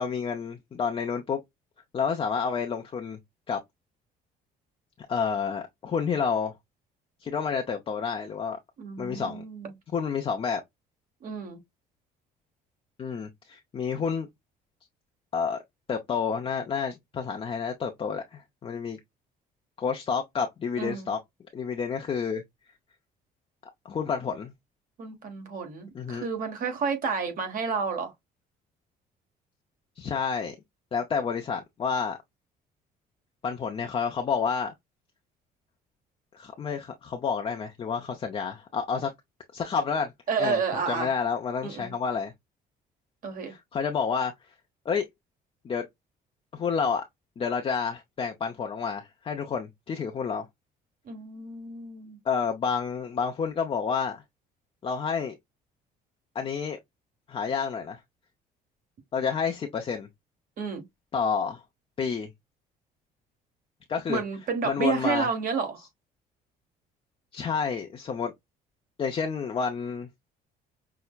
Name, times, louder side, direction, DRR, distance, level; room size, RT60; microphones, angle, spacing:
voice 1, 0.0-1.4 1.9-3.2 3.5-3.6 5.1-6.5 7.2-8.6 9.0-9.4 9.9-10.6 13.0-14.3 15.3-15.6 15.9-19.0 19.8-21.2 21.5-22.4 23.8-24.5 25.9-26.3 30.0-30.5 30.9-32.2 33.4-34.7 36.3-39.1 39.5-40.1 40.4-40.6 40.9-42.3 43.5-44.3 44.9-45.1 45.6-45.8 46.5-47.0 47.4-50.5 52.2-54.2 54.8-55.4 56.3-56.8 57.3-58.0 59.1-60.1 61.1-61.6 62.0-62.3 63.9-64.2 64.6-65.3 67.3-68.3 69.0-70.1, left 6 dB, 35° left, 0.6 m, -29 dB
voice 2, 8.8-9.7 11.2-11.6 20.8-21.1 25.0-28.1 40.3-41.1 41.6-41.9 43.2-43.5 51.1-52.2 60.6-60.8 64.1-65.8, right 5 dB, 55° right, 1.4 m, -30 dB
5.7 x 2.0 x 2.3 m
cardioid pair, 110°, 17 cm